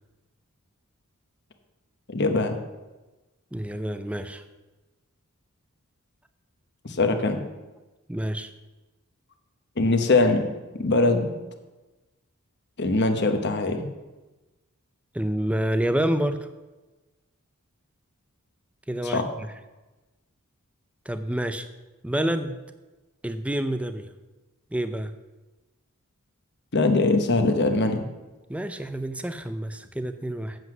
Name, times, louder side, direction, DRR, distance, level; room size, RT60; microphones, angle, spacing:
voice 1, 2.1-2.6 6.8-7.4 9.8-10.4 10.7-11.3 12.8-13.9 19.0-19.3 26.7-28.0, left 2 dB, 50° left, 6 dB, 1.0 m, -22 dB
voice 2, 3.5-4.4 8.1-8.5 15.1-16.5 18.9-19.3 21.1-21.7 22.0-22.6 23.2-24.1 24.7-25.1 28.5-30.6, right 1 dB, 5° right, 10 dB, 0.4 m, -28 dB
7.9 x 7.8 x 6.0 m, 1.1 s
head